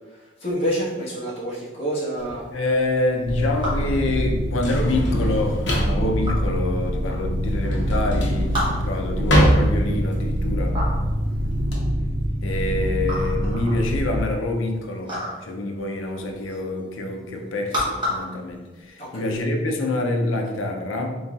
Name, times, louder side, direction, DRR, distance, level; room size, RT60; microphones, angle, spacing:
voice 1, 0.4-2.4 19.0-19.4, equal, 30° left, -8 dB, 1.2 m, -27 dB
Drawer open or close, 2.2-11.8, equal, 60° left, 0.9 m, -25 dB
voice 2, 2.5-10.8 12.4-21.2, left 2 dB, 80° left, 3 dB, 0.5 m, -26 dB
sound 1, 3.0-19.4, equal, 25° right, 1.1 m, -34 dB
sound 2, 3.2-14.2, equal, 60° right, 0.4 m, -25 dB
4.0 x 3.8 x 2.3 m, 1.2 s
head